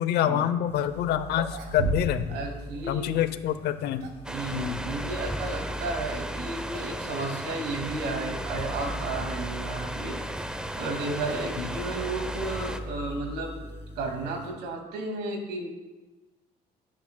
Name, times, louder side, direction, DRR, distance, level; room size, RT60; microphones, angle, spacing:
voice 1, 0.0-2.3 2.9-4.1 4.5-4.8 11.6-11.7, left 11 dB, 80° left, 12 dB, 0.7 m, -26 dB
sound 1, 0.7-14.5, left 1 dB, 15° left, 3.2 m, -41 dB
sound 2, 1.3-2.4 2.6-2.7 3.6-4.3 6.1-6.4 6.7-7.0 7.3-7.4 8.2-8.3 10.1-12.2, right 3 dB, 70° right, 1.9 m, -36 dB
voice 2, 2.3-3.2 4.3-10.2 10.8-13.7 14.0-15.7, right 3 dB, 90° right, 3 dB, 2.1 m, -33 dB
sound 3, 4.2-12.8, right 1 dB, 5° right, 0.7 m, -35 dB
17.5 x 8.8 x 2.3 m, 1.1 s
cardioid pair, 110°, 17 cm